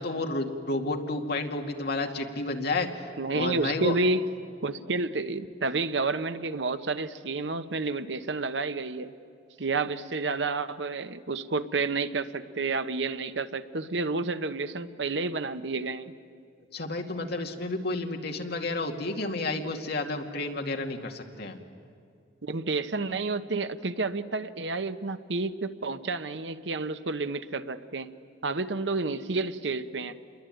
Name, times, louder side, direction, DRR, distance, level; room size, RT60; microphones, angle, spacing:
voice 1, 0.0-2.9 3.3-4.0 16.7-21.6, left 2 dB, 60° left, 3 dB, 2.3 m, -31 dB
voice 2, 3.2-4.2 4.6-9.1 9.6-16.1 22.4-28.1 28.4-30.2, right 3 dB, 75° right, 11 dB, 1.0 m, -30 dB
28.5 x 22.0 x 9.2 m, 2.4 s
head